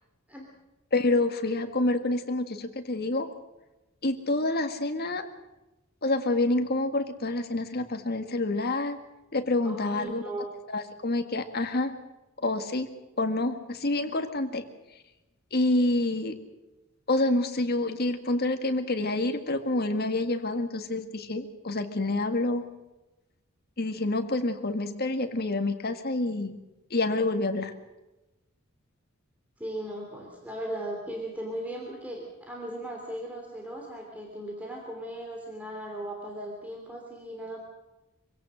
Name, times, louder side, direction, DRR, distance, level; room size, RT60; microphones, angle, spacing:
voice 1, 0.9-3.3 4.0-5.2 6.0-9.0 9.3-10.3 10.7-11.9 12.4-12.9 13.2-14.6 15.5-16.4 17.1-22.7 23.8-26.5 26.9-27.7, left 2 dB, 45° left, 7 dB, 1.8 m, -27 dB
voice 2, 9.6-10.6 29.6-37.6, right 1 dB, 5° right, -1 dB, 3.1 m, -37 dB
25.0 x 17.0 x 6.4 m, 1.0 s
head